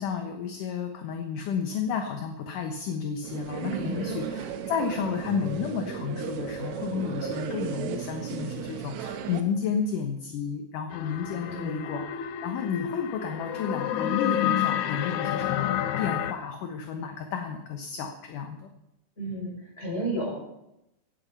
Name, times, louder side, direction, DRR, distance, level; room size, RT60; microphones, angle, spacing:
voice 1, 0.0-18.7, left 6 dB, 65° left, 5 dB, 2.4 m, -32 dB
sound 1, 3.2-9.4, right 8 dB, 90° right, 3.2 m, -35 dB
voice 2, 3.7-4.2 11.4-11.8 19.2-20.4, right 1 dB, 15° left, -3 dB, 7.3 m, -32 dB
sound 2, 10.9-16.3, left 11 dB, 85° left, 1.7 m, -29 dB
16.5 x 11.5 x 5.6 m, 0.86 s
omnidirectional pair, 4.6 m